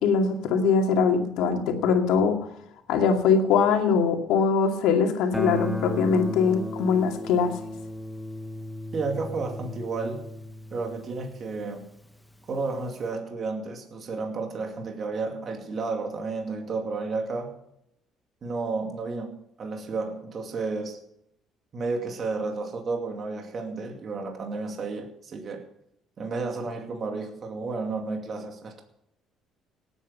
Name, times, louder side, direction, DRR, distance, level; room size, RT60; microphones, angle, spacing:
voice 1, 0.0-2.4 2.9-7.6, left 5 dB, 80° left, 2.4 m, -22 dB
Guitar, 5.3-12.1, left 1 dB, 5° left, 1.4 m, -35 dB
voice 2, 8.9-10.3 10.7-11.9 12.5-17.6 18.4-21.0 21.7-25.7 26.2-28.8, right 3 dB, 45° right, 2.4 m, -32 dB
18.5 x 8.9 x 5.6 m
cardioid pair, 110°, 0 cm